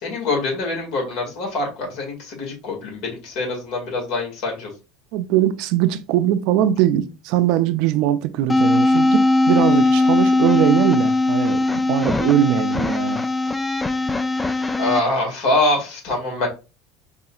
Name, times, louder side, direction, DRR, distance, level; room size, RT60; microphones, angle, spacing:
voice 1, 0.0-4.7 14.8-16.5, left 2 dB, 65° left, 2.0 m, -24 dB
voice 2, 5.1-13.2, right 12 dB, 65° right, 0.4 m, -21 dB
sound 1, 8.5-15.0, left 2 dB, 10° left, 0.3 m, -19 dB
4.9 x 2.8 x 2.3 m
supercardioid pair, 100°, 0 cm